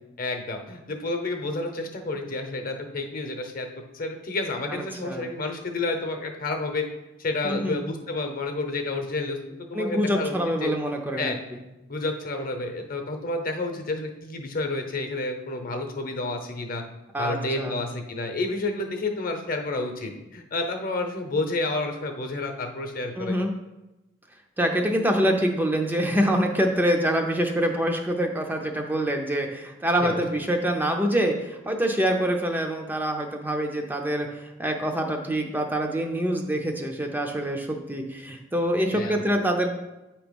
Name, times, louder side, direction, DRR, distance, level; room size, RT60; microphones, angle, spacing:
voice 1, 0.2-3.7 3.9-6.8 7.2-9.4 9.7-10.4 10.6-10.7 11.2-11.4 11.9-16.8 17.2-23.4 30.0-30.2 38.9-39.2, left 2 dB, 45° left, 5 dB, 0.8 m, -30 dB
voice 2, 4.7-5.3 7.4-7.8 9.7-11.3 17.1-17.8 23.2-23.5 24.6-39.7, equal, 10° right, 3 dB, 0.5 m, -25 dB
8.5 x 3.0 x 5.2 m, 1.0 s
head